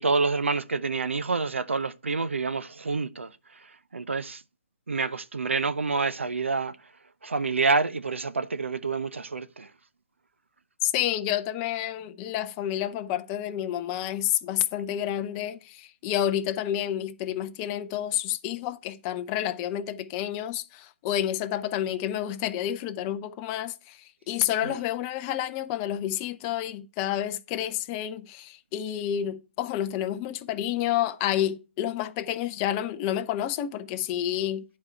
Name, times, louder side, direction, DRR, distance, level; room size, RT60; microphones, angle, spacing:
voice 1, 0.0-4.4 4.9-6.8 7.2-9.7 24.6-24.8, right 4 dB, 90° right, 0.7 m, -28 dB
voice 2, 10.8-34.6, left 11 dB, 20° left, 0.6 m, -29 dB
9.8 x 4.6 x 4.3 m
hypercardioid pair, 150°, 6 cm